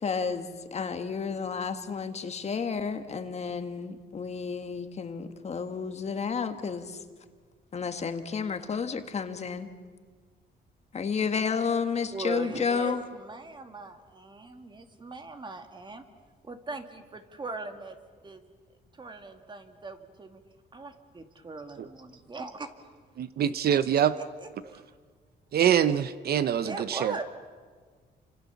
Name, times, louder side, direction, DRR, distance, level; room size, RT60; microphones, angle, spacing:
voice 1, 0.0-7.0 7.7-9.7 10.9-13.0, left 5 dB, 40° left, 1.7 m, -31 dB
voice 2, 12.1-16.0 16.4-18.4 18.9-20.4 20.7-22.9 23.7-23.8 24.2-24.9 26.6-27.2, right 3 dB, 25° right, 2.3 m, -40 dB
voice 3, 23.2-24.1 25.5-27.2, right 9 dB, 65° right, 0.8 m, -24 dB
29.5 x 26.0 x 7.1 m
cardioid pair, 125°, 18 cm